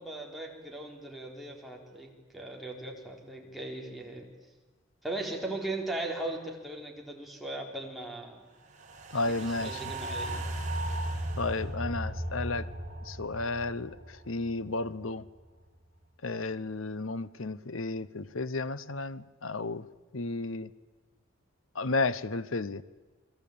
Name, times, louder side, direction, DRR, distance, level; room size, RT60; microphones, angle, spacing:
voice 1, 0.0-4.3 5.0-8.4 9.3-10.5, right 2 dB, ahead, 4.2 m, -38 dB
sound 1, 8.7-15.1 15.5-15.6, right 1 dB, 35° right, 4.2 m, -36 dB
voice 2, 9.1-9.8 11.4-12.7 13.1-13.9 14.3-15.2 16.2-19.8 20.1-20.7 21.8-22.8, left 3 dB, 75° left, 1.0 m, -32 dB
29.5 x 22.0 x 8.8 m
head